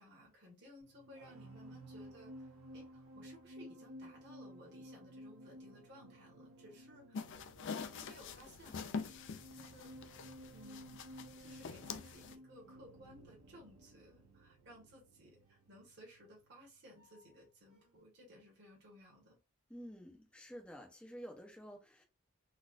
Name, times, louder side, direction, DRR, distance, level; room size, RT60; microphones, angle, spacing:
voice 1, 0.0-7.2 7.6-10.1 10.5-19.4, equal, 50° right, 1.3 m, -59 dB
sound 1, 0.8-17.5 17.7-18.0, equal, 65° right, 0.7 m, -55 dB
sound 2, 7.1-12.3, left 5 dB, 55° left, 0.4 m, -45 dB
voice 2, 19.7-22.0, equal, 5° left, 0.6 m, -50 dB
4.0 x 2.4 x 2.4 m
head